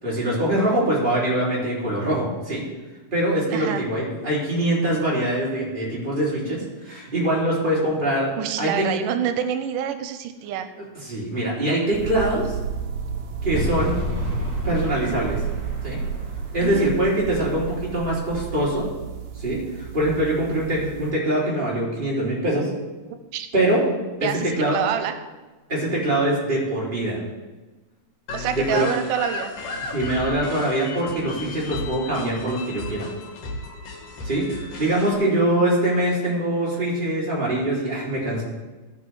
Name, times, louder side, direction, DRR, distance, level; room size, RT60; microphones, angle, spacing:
voice 1, 0.0-2.6 3.1-8.3 8.6-8.9 11.0-12.6 13.4-14.0 14.6-15.4 15.8-16.0 16.5-18.8 19.4-22.7 23.5-23.8 24.2-24.8 25.7-27.2 28.5-28.9 29.9-33.1 34.2-38.4, right 1 dB, 15° right, -6 dB, 3.4 m, -23 dB
voice 2, 3.5-3.8 8.4-10.7 16.6-16.9 23.3-23.5 24.2-25.1 28.3-29.5, right 9 dB, 90° right, 9 dB, 2.2 m, -27 dB
sound 1, 11.9-21.1, right 6 dB, 70° right, 1.9 m, -32 dB
sound 2, 13.5-18.7, equal, 35° right, 2.0 m, -31 dB
sound 3, 28.3-35.1, left 3 dB, 75° left, 3.2 m, -34 dB
16.5 x 5.7 x 4.7 m, 1.2 s
omnidirectional pair, 3.8 m